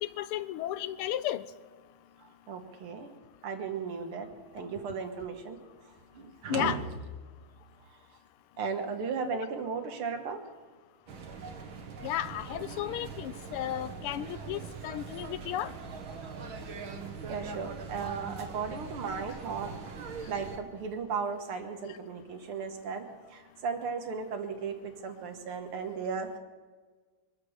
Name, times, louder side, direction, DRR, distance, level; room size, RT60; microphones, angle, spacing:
voice 1, 0.0-1.4 6.5-6.8 12.0-15.7, left 12 dB, 90° left, 14 dB, 1.6 m, -33 dB
voice 2, 2.2-3.1 3.4-4.3 4.5-5.6 6.1-6.8 8.6-10.4 17.3-19.8 20.3-23.1 23.3-26.4, right 5 dB, 85° right, 5 dB, 2.3 m, -35 dB
sound 1, 11.1-20.6, right 5 dB, 65° right, 2.2 m, -42 dB
23.0 x 8.4 x 6.5 m, 1.4 s
omnidirectional pair, 2.4 m